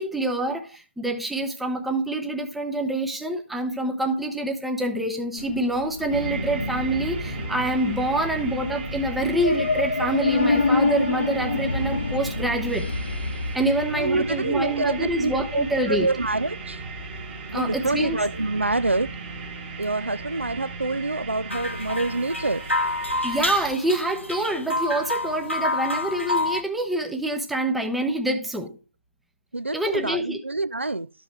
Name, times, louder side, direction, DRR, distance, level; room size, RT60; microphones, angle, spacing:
voice 1, 0.0-12.9 13.5-16.1 17.5-18.2 23.2-28.7 29.7-30.4, right 1 dB, ahead, 0.6 m, -26 dB
sound 1, 5.4-13.6, left 3 dB, 60° left, 0.9 m, -27 dB
sound 2, 6.1-23.7, right 3 dB, 15° right, 1.1 m, -35 dB
voice 2, 13.9-16.8 17.5-19.1 19.8-22.7 29.5-31.1, right 2 dB, 85° right, 0.4 m, -26 dB
sound 3, 21.5-26.6, left 2 dB, 90° left, 1.0 m, -28 dB
12.0 x 5.2 x 3.2 m
figure-of-eight pair, 140°, 6 cm